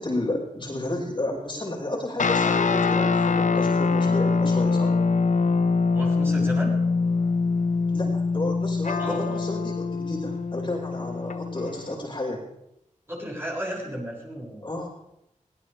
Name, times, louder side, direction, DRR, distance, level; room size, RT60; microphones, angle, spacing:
voice 1, 0.0-4.9 7.9-12.5 14.6-14.9, left 1 dB, 40° left, -3 dB, 5.6 m, -31 dB
sound 1, 2.2-11.9, left 4 dB, 70° left, 0.9 m, -24 dB
voice 2, 5.9-6.7 9.0-9.4 13.1-14.7, equal, 15° right, -4 dB, 7.0 m, -33 dB
21.5 x 17.0 x 3.5 m, 0.80 s
wide cardioid pair, 85°, 13 cm